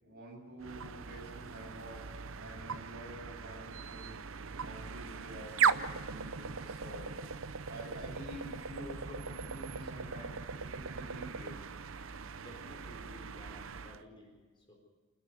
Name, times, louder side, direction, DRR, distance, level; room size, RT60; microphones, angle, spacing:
voice 1, 0.0-2.0 2.4-4.1 4.6-7.1 7.7-11.5, equal, 45° right, -1 dB, 7.8 m, -48 dB
sound 1, 0.6-14.0, right 6 dB, 65° right, 0.7 m, -38 dB
voice 2, 12.3-14.7, equal, 25° left, 0 dB, 4.4 m, -54 dB
27.5 x 10.5 x 9.5 m, 1.4 s
head